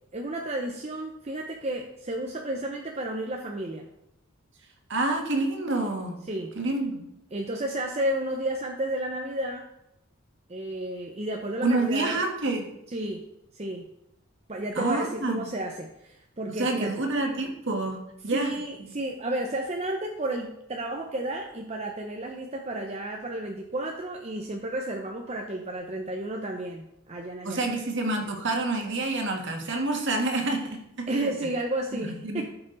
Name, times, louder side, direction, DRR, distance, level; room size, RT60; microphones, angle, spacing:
voice 1, 0.1-3.9 6.3-6.5 7.3-9.7 10.5-12.2 12.9-13.3 13.5-13.9 14.5-16.9 18.3-27.6 31.1-32.4, right 1 dB, 30° right, 2 dB, 0.7 m, -32 dB
voice 2, 4.9-6.2 6.6-7.0 11.6-12.7 14.8-15.5 16.5-18.6 27.4-31.3 31.9-32.4, right 2 dB, 55° right, 2 dB, 1.8 m, -28 dB
14.0 x 5.9 x 4.0 m, 0.84 s
head